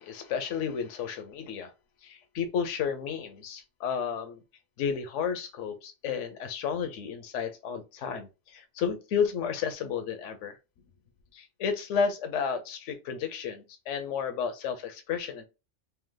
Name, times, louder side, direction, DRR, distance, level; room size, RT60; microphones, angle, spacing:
voice 1, 0.0-1.7 2.0-4.4 4.8-10.6 11.3-15.5, left 6 dB, 80° left, 1.0 m, -32 dB
3.3 x 2.8 x 3.7 m
omnidirectional pair, 1.2 m